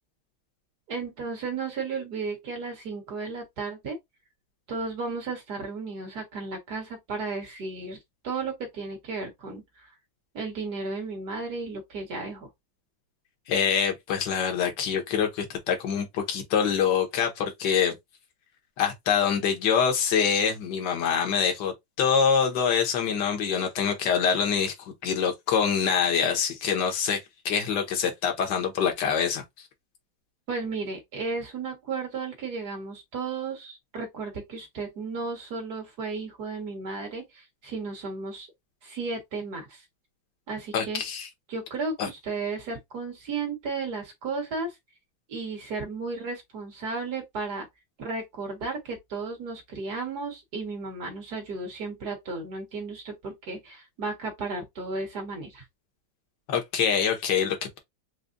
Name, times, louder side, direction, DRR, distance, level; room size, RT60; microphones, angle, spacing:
voice 1, 0.9-4.0 4.7-8.0 8.2-9.9 10.3-12.5 30.5-38.5 38.8-39.8 40.5-41.0 41.5-44.7 45.3-47.7 48.0-55.6, right 4 dB, 55° right, 2.2 m, -34 dB
voice 2, 13.5-17.9 18.8-29.7 40.7-41.3 42.0-42.1 56.5-57.8, left 7 dB, 70° left, 1.7 m, -25 dB
4.9 x 2.3 x 2.6 m
omnidirectional pair, 2.1 m